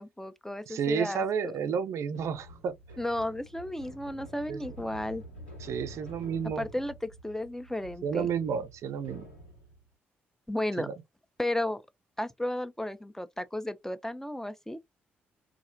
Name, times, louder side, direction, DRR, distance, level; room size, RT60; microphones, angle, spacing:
voice 1, 0.0-1.2 3.0-5.2 6.6-6.9 7.2-8.3 10.5-10.9 11.4-11.8 12.2-14.8, left 1 dB, 5° left, 0.4 m, -33 dB
voice 2, 0.7-2.7 4.5-4.6 5.6-6.6 8.0-9.2 10.8-10.9, right 7 dB, 55° right, 0.4 m, -31 dB
sound 1, 2.1-9.8, right 1 dB, 90° left, 1.3 m, -48 dB
2.4 x 2.0 x 2.5 m
figure-of-eight pair, 40°, 6 cm